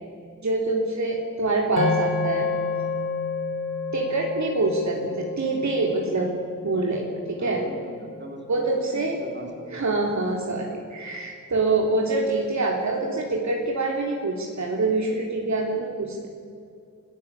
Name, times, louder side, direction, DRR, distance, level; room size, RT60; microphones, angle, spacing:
voice 1, 0.4-2.5 3.9-6.3 6.6-7.6 8.5-9.2 9.7-16.3, right 3 dB, 60° right, 0 dB, 3.4 m, -25 dB
sound 1, 1.8-10.1, left 4 dB, 80° left, 3.5 m, -31 dB
voice 2, 7.4-9.8, right 1 dB, 35° right, 2 dB, 4.8 m, -40 dB
27.5 x 16.5 x 8.3 m, 2.4 s
wide cardioid pair, 110°, 32 cm